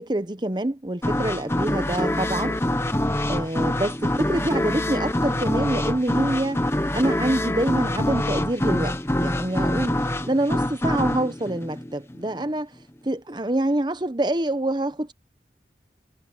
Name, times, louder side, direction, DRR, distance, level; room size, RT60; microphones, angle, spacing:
voice 1, 0.0-2.6 3.3-6.6 6.9-9.9 10.3-12.7 13.0-15.1, right 1 dB, 25° right, 1.0 m, -26 dB
sound 1, 1.0-12.5, left 1 dB, 15° left, 1.1 m, -25 dB
head